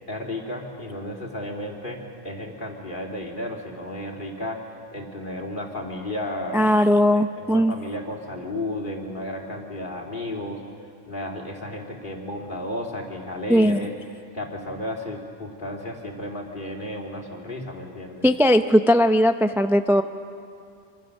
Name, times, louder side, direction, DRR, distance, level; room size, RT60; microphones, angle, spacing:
voice 1, 0.1-4.6 4.9-6.7 7.1-10.6 11.1-13.9 14.3-18.2, left 1 dB, 45° left, 0 dB, 2.8 m, -33 dB
voice 2, 6.5-7.7 13.5-13.8 18.2-20.0, equal, 5° right, 8 dB, 0.3 m, -18 dB
26.5 x 25.0 x 6.5 m, 2.4 s
omnidirectional pair, 1.2 m